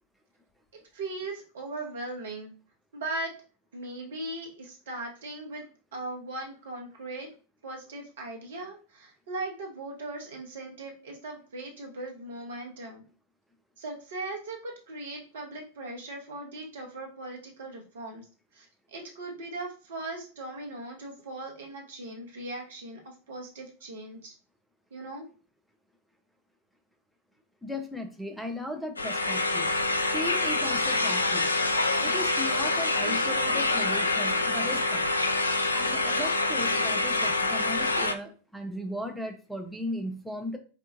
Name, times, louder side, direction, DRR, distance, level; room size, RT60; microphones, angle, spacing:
voice 1, 0.9-2.5 2.9-3.3 3.7-5.6 5.9-7.3 7.6-13.0 13.8-18.3 18.5-24.3 24.9-25.2, right 2 dB, 60° right, 1 dB, 1.0 m, -39 dB
voice 2, 27.6-29.7 30.1-31.5 32.0-35.1 35.7-40.6, left 1 dB, ahead, 4 dB, 0.6 m, -36 dB
sound 1, 29.0-38.1, left 2 dB, 80° left, 0.3 m, -26 dB
4.4 x 2.4 x 2.5 m, 0.36 s
figure-of-eight pair, 90°, 0 cm